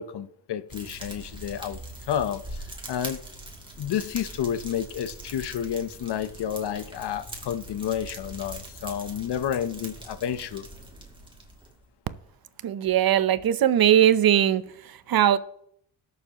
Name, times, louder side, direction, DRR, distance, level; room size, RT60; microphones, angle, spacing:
voice 1, 0.0-1.8 2.1-3.2 3.8-10.7, left 9 dB, 60° left, 0.8 m, -30 dB
Fire, 0.7-11.8, right 1 dB, 10° right, 2.4 m, -42 dB
voice 2, 12.6-14.6 15.1-15.4, right 10 dB, 50° right, 0.7 m, -19 dB
19.5 x 6.8 x 2.9 m
cardioid pair, 85°, 47 cm